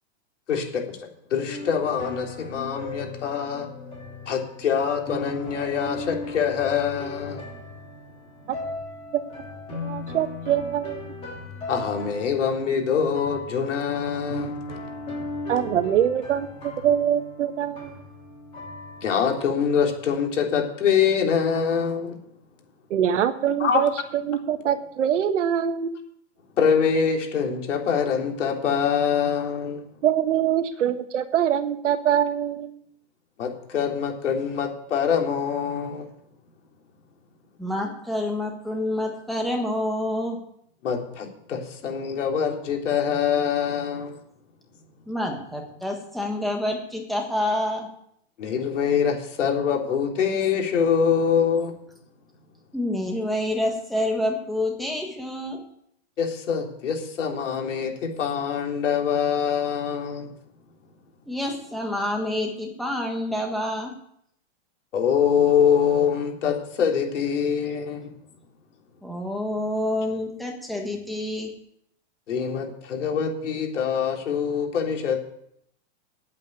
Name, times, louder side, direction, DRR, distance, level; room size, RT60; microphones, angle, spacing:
voice 1, 0.5-3.7 4.3-7.4 11.7-14.5 19.0-22.2 23.6-23.8 26.6-29.8 33.4-36.1 40.8-44.1 48.4-51.7 56.2-60.3 64.9-68.1 72.3-75.2, left 7 dB, 90° left, 1 dB, 3.6 m, -24 dB
sound 1, 1.5-20.0, left 2 dB, 15° left, 3.3 m, -37 dB
voice 2, 9.1-11.0 15.5-17.9 22.9-26.0 30.0-32.7, right 9 dB, 80° right, 8 dB, 1.5 m, -24 dB
voice 3, 37.6-40.4 45.1-47.9 52.7-55.6 61.3-63.9 69.0-71.5, left 1 dB, ahead, 0 dB, 1.3 m, -28 dB
9.4 x 8.3 x 8.7 m, 0.72 s
supercardioid pair, 170°, 35 cm